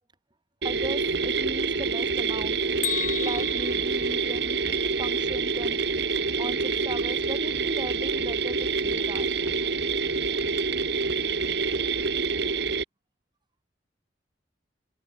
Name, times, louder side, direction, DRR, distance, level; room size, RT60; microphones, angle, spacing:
voice 1, 0.6-2.7 3.2-4.6 5.0-5.8 6.4-9.7 10.0-10.1, right 1 dB, 25° right, 2.6 m, -38 dB
sound 1, 0.6-12.8, right 4 dB, 60° right, 2.0 m, -27 dB
Bell, 2.8-4.9, left 9 dB, 45° left, 2.9 m, -34 dB
head